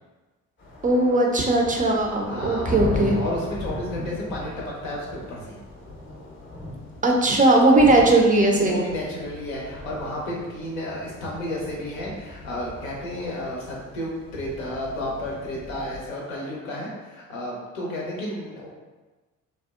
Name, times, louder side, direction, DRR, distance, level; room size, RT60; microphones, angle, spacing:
sound 1, 0.6-16.0, left 1 dB, 30° left, 0.7 m, -37 dB
voice 1, 0.8-3.2 7.0-8.8, right 2 dB, 25° right, 0 dB, 0.3 m, -18 dB
voice 2, 2.3-2.8 3.1-5.6 8.5-18.7, left 1 dB, 90° left, -4 dB, 0.6 m, -32 dB
2.6 x 2.1 x 2.3 m, 1.2 s
hypercardioid pair, 50°, 39 cm